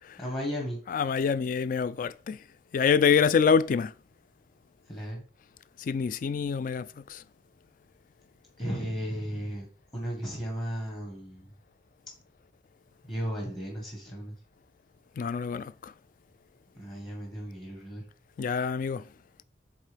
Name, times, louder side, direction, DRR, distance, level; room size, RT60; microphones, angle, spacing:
voice 1, 0.2-0.8 4.9-5.2 8.6-9.6 9.9-11.5 13.1-14.3 16.7-18.0, equal, 30° left, 1.5 m, -35 dB
voice 2, 0.9-2.4 2.7-3.9 5.8-7.2 15.2-15.9 18.4-19.0, left 6 dB, 50° left, 0.3 m, -26 dB
8.5 x 3.7 x 3.4 m
head